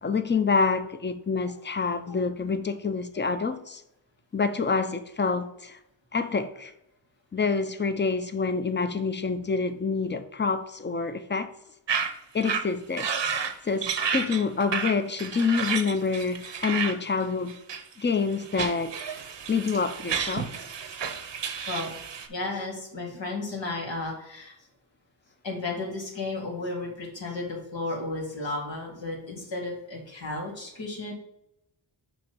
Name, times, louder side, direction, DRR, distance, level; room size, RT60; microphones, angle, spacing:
voice 1, 0.0-3.8 4.3-5.8 6.1-6.7 7.3-11.5 12.0-12.1 12.3-13.1 13.6-17.6 18.0-19.2 19.5-20.5, left 4 dB, 25° left, 0.5 m, -27 dB
voice 2, 2.0-2.5 20.9-21.0 21.7-22.0 22.3-24.6 25.4-31.1, left 2 dB, 80° left, 2.0 m, -34 dB
sound 1, 11.9-12.1 12.4-12.6 13.0-13.5 13.8-16.9 17.5-17.9 18.4-22.3, right 6 dB, 70° right, 0.7 m, -31 dB
6.1 x 3.0 x 5.3 m
cardioid pair, 45°, 45 cm